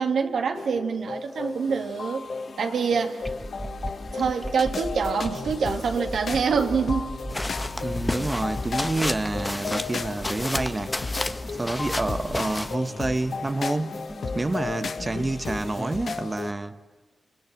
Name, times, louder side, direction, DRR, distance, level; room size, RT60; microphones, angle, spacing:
voice 1, 0.0-2.3 2.6-3.2 4.1-7.1, right 5 dB, 80° right, 2.3 m, -25 dB
sound 1, 0.5-16.5, left 4 dB, 70° left, 1.7 m, -35 dB
sound 2, 3.2-16.3, equal, 5° right, 2.2 m, -38 dB
sound 3, 7.3-12.8, left 2 dB, 25° left, 1.2 m, -32 dB
voice 2, 7.8-11.0 11.5-14.0 14.3-16.8, right 2 dB, 30° right, 1.1 m, -28 dB
28.0 x 26.0 x 7.6 m
cardioid pair, 50°, 0 cm